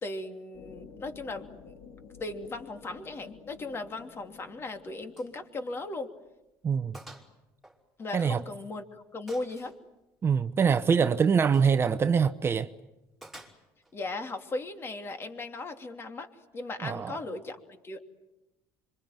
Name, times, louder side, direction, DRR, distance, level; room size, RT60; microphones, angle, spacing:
voice 1, 0.0-1.7 2.2-6.1 8.0-9.7 13.9-18.0, left 2 dB, 30° left, 3.0 m, -37 dB
sound 1, 0.5-6.0, left 5 dB, 65° left, 4.0 m, -51 dB
Gunshot gunfire, 5.1-5.4 5.7-5.8 6.3-6.4 6.9-7.3 7.6-8.6 9.3-9.8 11.4-11.7 13.2-13.9, right 1 dB, ahead, 5.2 m, -50 dB
voice 2, 6.6-7.0 8.1-8.4 10.2-12.7 16.8-17.2, right 6 dB, 30° right, 0.9 m, -24 dB
26.0 x 24.5 x 9.2 m
cardioid pair, 110°, 8 cm